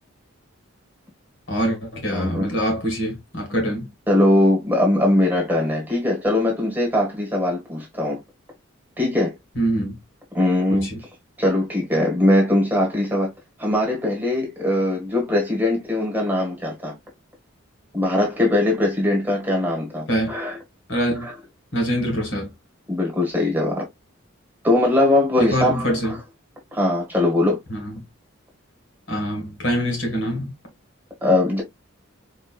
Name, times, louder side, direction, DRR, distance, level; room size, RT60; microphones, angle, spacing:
voice 1, 1.5-3.9 9.6-10.0 10.7-11.0 20.1-20.3 20.9-21.3 21.7-22.5 25.4-26.2 27.7-28.0 29.1-30.5, equal, 60° left, 1.9 m, -24 dB
voice 2, 2.1-2.5 4.1-8.2 9.0-9.4 10.3-10.9 11.4-13.3 13.6-16.9 17.9-20.6 21.2-21.3 22.9-23.9 24.6-25.9 26.7-27.6 31.2-31.6, left 1 dB, 10° right, 1.4 m, -21 dB
4.4 x 3.1 x 2.3 m
head